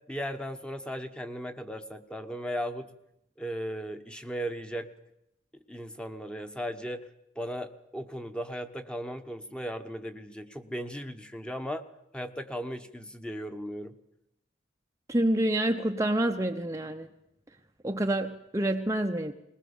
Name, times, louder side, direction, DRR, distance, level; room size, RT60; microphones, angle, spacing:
voice 1, 0.1-2.9 3.4-4.9 5.7-7.1 7.3-11.8 12.1-14.0, equal, 5° left, 8 dB, 1.2 m, -36 dB
voice 2, 15.1-17.1 17.8-19.3, right 1 dB, 15° right, 4 dB, 0.8 m, -27 dB
20.5 x 20.0 x 7.2 m, 0.82 s
head